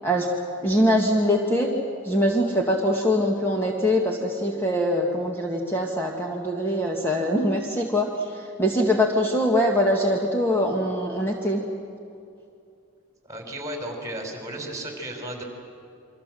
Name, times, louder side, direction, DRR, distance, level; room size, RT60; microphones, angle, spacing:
voice 1, 0.6-1.7 2.0-8.1 8.6-11.6, equal, 10° left, -1 dB, 2.0 m, -23 dB
voice 2, 13.2-15.4, right 1 dB, 15° right, 2 dB, 5.1 m, -34 dB
29.5 x 24.5 x 7.7 m, 2.6 s
head